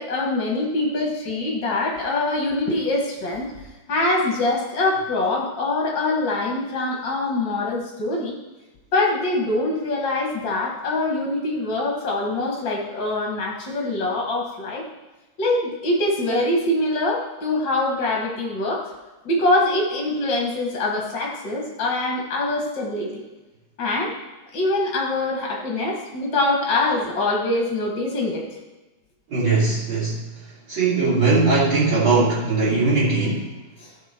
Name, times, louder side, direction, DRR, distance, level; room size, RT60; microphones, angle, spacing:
voice 1, 0.0-3.5 3.9-8.4 8.9-14.8 15.4-18.8 19.3-23.1 23.8-24.1 24.5-28.4, left 2 dB, 45° left, 0 dB, 1.9 m, -24 dB
voice 2, 29.3-30.2 30.7-33.5, right 3 dB, 40° right, -7 dB, 3.4 m, -20 dB
16.0 x 6.0 x 4.5 m, 1.1 s
omnidirectional pair, 3.8 m